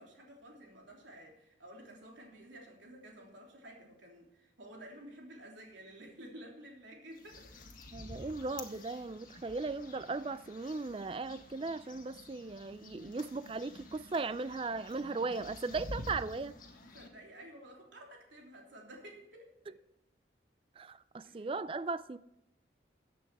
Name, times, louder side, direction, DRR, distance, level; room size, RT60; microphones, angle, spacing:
voice 1, 0.0-7.5 16.9-19.8 21.2-21.5, right 1 dB, 80° right, 3.3 m, -52 dB
sound 1, 7.1-17.1, left 1 dB, 45° left, 1.7 m, -49 dB
voice 2, 7.9-16.5 20.8-22.2, right 3 dB, 30° right, 0.4 m, -37 dB
15.0 x 8.5 x 4.8 m
head